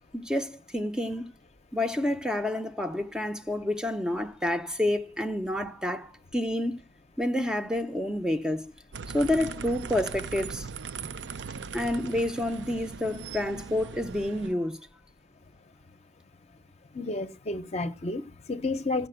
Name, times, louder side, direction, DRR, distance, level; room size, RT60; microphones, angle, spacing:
voice 1, 0.1-1.3 1.7-6.8 7.2-8.6 9.1-10.7 11.7-14.8, left 1 dB, 5° right, 0.6 m, -29 dB
sound 1, 8.9-14.5, right 5 dB, 80° right, 0.5 m, -39 dB
voice 2, 16.9-19.1, left 2 dB, 40° left, 0.7 m, -31 dB
16.5 x 5.8 x 7.7 m
head